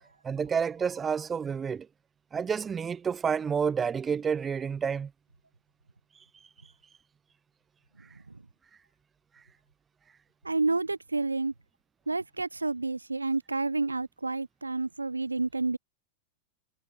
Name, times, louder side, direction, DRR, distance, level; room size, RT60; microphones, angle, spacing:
voice 1, 0.2-1.9 2.3-5.1, right 6 dB, 20° right, 2.9 m, -29 dB
voice 2, 10.4-11.5 12.1-15.8, right 3 dB, 80° right, 3.1 m, -29 dB
figure-of-eight pair, 90°, 0 cm